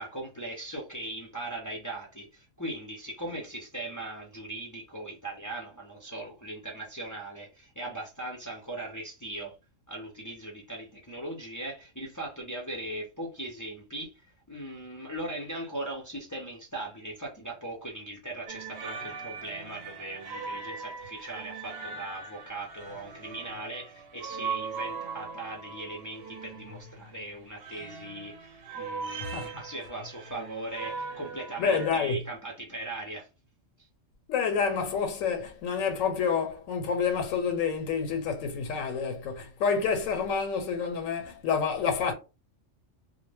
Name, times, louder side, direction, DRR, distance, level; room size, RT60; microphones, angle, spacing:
voice 1, 0.0-9.5 9.9-33.3, right 1 dB, 30° left, 0.3 m, -39 dB
sound 1, 18.5-31.9, right 5 dB, 60° right, 0.7 m, -40 dB
voice 2, 31.6-32.2 34.3-42.1, left 6 dB, 90° left, 1.0 m, -28 dB
2.1 x 2.1 x 3.2 m
omnidirectional pair, 1.3 m